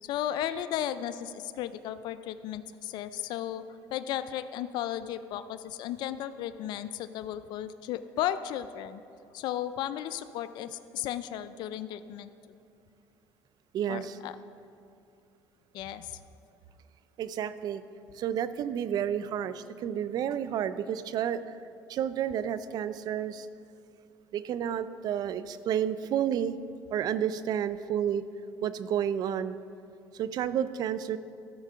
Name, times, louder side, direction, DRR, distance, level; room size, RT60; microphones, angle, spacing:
voice 1, 0.0-3.6 3.9-9.0 9.3-12.3 13.9-14.4 15.7-16.2, left 11 dB, 65° left, 12 dB, 0.4 m, -35 dB
voice 2, 13.7-14.2 17.2-17.8 18.1-21.6 21.9-23.5 24.3-26.6 26.9-28.2 28.6-29.6 30.1-31.2, right 9 dB, 55° right, 14 dB, 0.5 m, -30 dB
13.5 x 4.6 x 6.7 m, 2.5 s
supercardioid pair, 95°, 8 cm